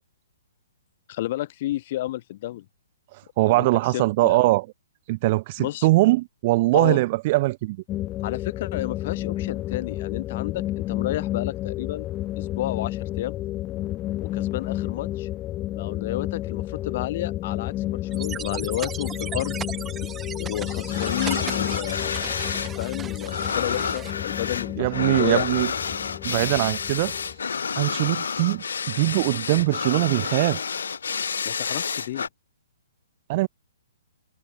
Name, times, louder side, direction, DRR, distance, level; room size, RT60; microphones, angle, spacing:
voice 1, 1.1-2.6 3.5-3.7 3.9-4.5 5.6-5.9 6.7-7.0 8.2-12.1 12.4-13.3 14.2-15.3 15.7-19.6 20.4-22.1 22.8-25.5 31.4-32.3, left 15 dB, 45° left, 1.0 m, -31 dB
voice 2, 3.4-4.6 5.1-7.8 24.8-25.7 26.2-27.1 27.7-30.6 33.3-33.5, right 20 dB, 35° right, 0.5 m, -22 dB
sound 1, 7.9-27.4, left 15 dB, 20° left, 2.1 m, -31 dB
sound 2, 18.1-24.1, right 8 dB, 15° right, 3.0 m, -37 dB
sound 3, 20.9-22.7 23.0-32.3, left 6 dB, 85° left, 1.6 m, -29 dB
hypercardioid pair, 155°, 0 cm